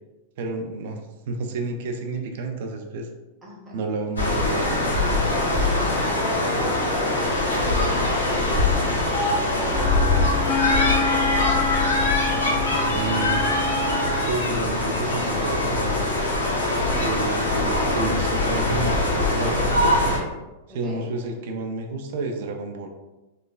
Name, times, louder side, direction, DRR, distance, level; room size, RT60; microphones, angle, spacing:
voice 1, 0.4-1.0 1.3-3.1 3.7-4.9 12.8-13.4 14.2-16.1 17.0-20.2 20.7-22.9, right 3 dB, 60° right, 4 dB, 0.4 m, -30 dB
voice 2, 3.4-3.8 5.8-10.3 10.7-11.2 20.7-21.1, equal, 15° right, -4 dB, 1.0 m, -36 dB
sound 1, 4.2-20.2, left 2 dB, 90° left, 0.7 m, -22 dB
Wind instrument woodwind instrument, 9.7-14.5, left 3 dB, 40° left, 0.3 m, -28 dB
3.2 x 2.0 x 2.3 m, 1.0 s
hypercardioid pair, 100°, 0 cm